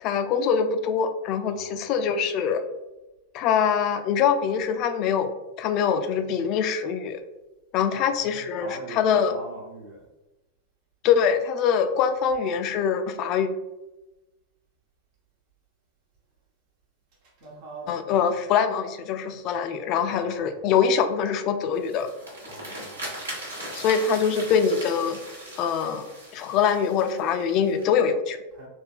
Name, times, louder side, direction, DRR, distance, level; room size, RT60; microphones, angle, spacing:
voice 1, 0.0-2.6 3.3-5.3 5.6-7.2 7.7-9.3 11.0-13.5 17.9-22.1 23.7-25.2 25.6-28.4, left 7 dB, 40° left, 0.3 m, -24 dB
voice 2, 1.5-2.1 7.9-10.1 17.2-18.5 20.1-20.7 22.4-23.3 28.5-28.7, right 1 dB, 45° right, 0.9 m, -42 dB
sound 1, 21.7-27.8, right 1 dB, 70° right, 1.0 m, -39 dB
3.4 x 2.2 x 3.5 m
figure-of-eight pair, 90°, 0 cm